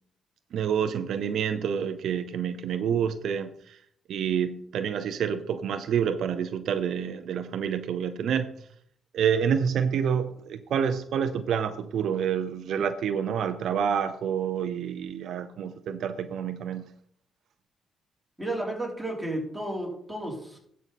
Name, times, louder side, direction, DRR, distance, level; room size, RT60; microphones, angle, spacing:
voice 1, 0.5-3.8 4.1-8.5 9.1-16.9, right 7 dB, 70° right, 11 dB, 0.6 m, -28 dB
voice 2, 18.4-20.6, right 1 dB, 5° right, -2 dB, 3.6 m, -32 dB
12.0 x 5.5 x 4.1 m, 0.66 s
cardioid pair, 90°, 0 cm